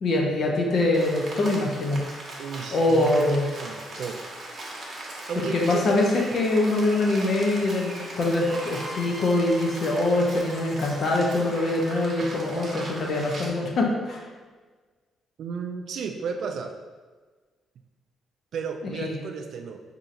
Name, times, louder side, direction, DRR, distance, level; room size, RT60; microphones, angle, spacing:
voice 1, 0.0-2.0 2.7-3.5 5.4-14.2 19.0-19.1, left 2 dB, 60° left, 0 dB, 0.6 m, -24 dB
Rain, 0.9-13.5, right 1 dB, 45° right, 0.9 m, -39 dB
voice 2, 2.4-4.2 5.3-5.9 15.4-16.7 18.5-19.8, right 6 dB, 65° right, 5 dB, 0.3 m, -33 dB
sound 1, 8.5-12.2, left 1 dB, 15° right, 0.7 m, -43 dB
3.8 x 2.8 x 2.5 m, 1.4 s
cardioid pair, 90°, 0 cm